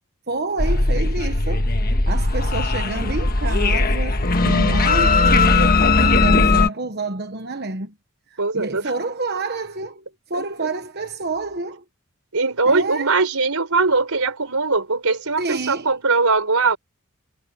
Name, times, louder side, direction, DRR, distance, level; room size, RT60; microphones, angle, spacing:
voice 1, 0.3-1.7 2.1-7.9 8.3-10.0 10.3-11.8 12.6-13.1 15.4-15.9, right 3 dB, 45° right, 1.2 m, -28 dB
sound 1, 0.6-6.7, left 3 dB, 40° left, 1.5 m, -18 dB
voice 2, 8.4-8.8 10.3-10.7 12.3-16.8, right 3 dB, 85° right, 4.0 m, -21 dB
head